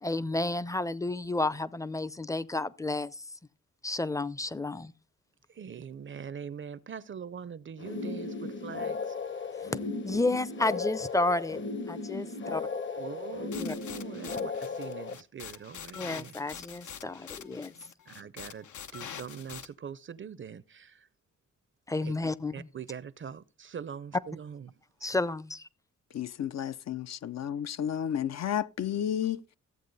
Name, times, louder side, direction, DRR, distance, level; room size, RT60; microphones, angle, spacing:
voice 1, 0.0-3.2 3.8-4.9 10.0-11.6 11.9-12.6 13.6-13.7 15.9-17.7 21.9-22.7 25.0-25.7, left 2 dB, 10° left, 0.5 m, -31 dB
voice 2, 5.5-9.2 13.0-16.3 18.1-18.7 18.9-21.1 22.0-22.1 22.5-24.7, right 7 dB, 40° right, 0.5 m, -43 dB
sound 1, 7.8-15.1, left 4 dB, 40° left, 0.9 m, -36 dB
sound 2, 13.5-19.7, left 8 dB, 85° left, 0.9 m, -45 dB
voice 3, 26.1-29.6, left 9 dB, 65° left, 0.5 m, -32 dB
14.5 x 8.3 x 4.0 m
wide cardioid pair, 125°, 29 cm